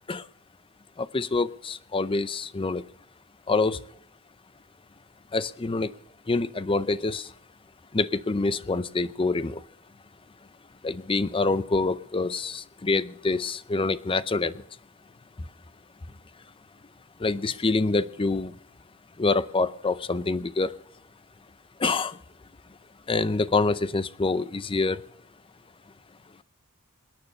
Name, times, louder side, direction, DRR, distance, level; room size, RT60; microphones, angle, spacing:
voice 1, 1.0-2.8 3.5-3.8 5.3-5.9 6.3-7.3 7.9-9.6 10.8-14.6 17.2-18.5 19.2-20.7 21.8-22.2 23.1-25.0, left 3 dB, 25° left, 15 dB, 0.5 m, -26 dB
28.0 x 9.5 x 5.4 m, 0.63 s
head